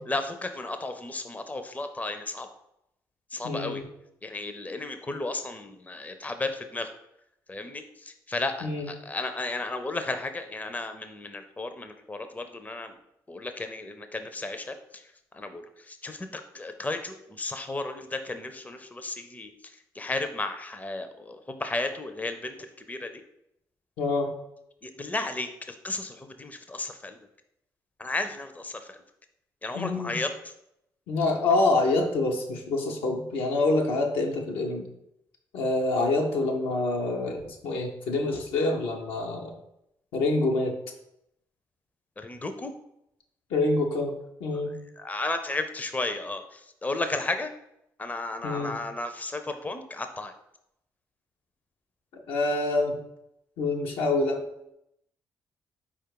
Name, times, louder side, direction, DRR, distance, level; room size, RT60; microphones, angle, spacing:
voice 1, 0.1-2.5 3.3-3.8 4.2-6.9 7.5-7.8 8.3-12.9 13.3-14.7 15.3-19.5 20.0-22.6 22.9-23.1 24.8-27.2 28.0-29.0 29.6-30.3 42.2-42.7 45.0-47.5 48.0-50.3, left 2 dB, 15° left, 7 dB, 0.5 m, -33 dB
voice 2, 3.4-3.8 8.6-8.9 24.0-24.3 29.7-30.2 31.1-34.9 35.5-39.5 40.1-40.7 43.5-44.1 44.4-44.8 48.4-48.8 52.3-53.0 53.6-54.4, left 2 dB, 75° left, 1 dB, 0.7 m, -26 dB
4.5 x 2.4 x 4.6 m, 0.80 s
hypercardioid pair, 45°, 9 cm